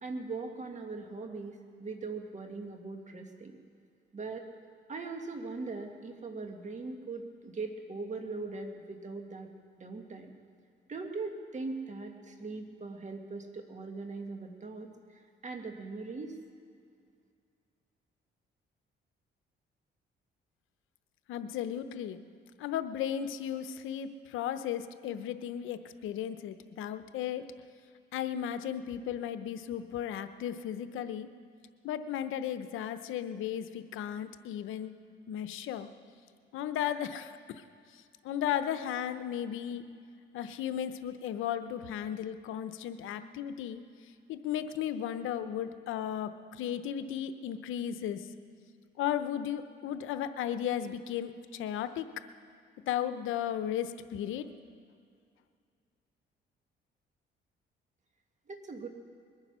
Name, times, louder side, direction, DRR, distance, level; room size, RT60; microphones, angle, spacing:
voice 1, 0.0-3.6 4.1-4.5 4.9-9.5 9.8-10.3 10.9-16.4 58.5-58.9, right 3 dB, 35° right, 4 dB, 1.9 m, -40 dB
voice 2, 21.3-22.2 22.6-27.5 28.1-31.3 31.8-34.9 35.3-35.9 36.5-37.3 38.2-39.8 40.3-43.8 44.3-48.2 49.0-52.1 52.9-54.5, left 10 dB, 85° left, 10 dB, 0.8 m, -35 dB
21.5 x 9.7 x 6.2 m, 2.3 s
cardioid pair, 90°, 20 cm